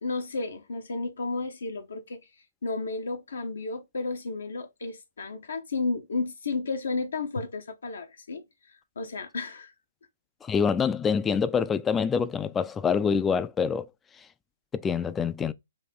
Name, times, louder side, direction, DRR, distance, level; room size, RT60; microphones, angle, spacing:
voice 1, 0.0-2.2 2.6-8.4 9.0-9.7, left 3 dB, 75° left, 0.8 m, -32 dB
voice 2, 10.4-13.9 14.7-15.5, left 6 dB, 15° left, 0.3 m, -26 dB
4.0 x 2.7 x 3.7 m
hypercardioid pair, 130°, 0 cm